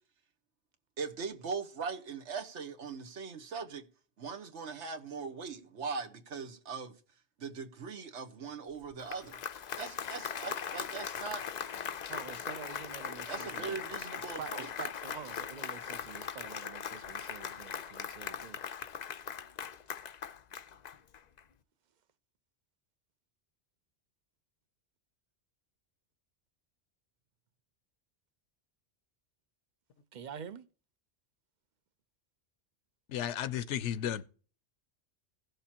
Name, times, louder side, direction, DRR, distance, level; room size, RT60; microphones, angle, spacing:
voice 1, 1.0-3.8 4.2-6.9 7.4-9.4 9.8-11.4 13.3-14.7, right 5 dB, 80° right, 1.4 m, -40 dB
Applause, 8.8-21.4, left 8 dB, 50° left, 0.5 m, -40 dB
voice 2, 12.1-13.8 14.4-18.6 30.1-30.7, right 7 dB, 50° right, 0.7 m, -46 dB
voice 3, 33.1-34.3, left 10 dB, 85° left, 1.0 m, -34 dB
17.0 x 6.6 x 2.9 m
omnidirectional pair, 1.2 m